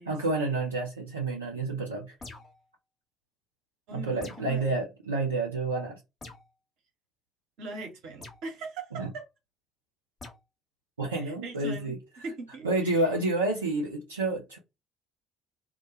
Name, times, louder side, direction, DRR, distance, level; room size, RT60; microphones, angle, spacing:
voice 1, 0.1-2.2 3.9-6.0 8.9-9.1 11.0-12.0 12.6-14.6, right 2 dB, 90° right, 0.5 m, -29 dB
sound 1, 2.2-2.7 4.2-4.6 6.2-6.5 8.2-8.4 10.2-10.4, left 3 dB, 35° left, 1.0 m, -45 dB
voice 2, 3.9-4.7 7.6-9.2 11.3-11.9 12.2-13.0, right 3 dB, 65° right, 0.9 m, -40 dB
2.2 x 2.2 x 2.7 m
figure-of-eight pair, 50°, 0 cm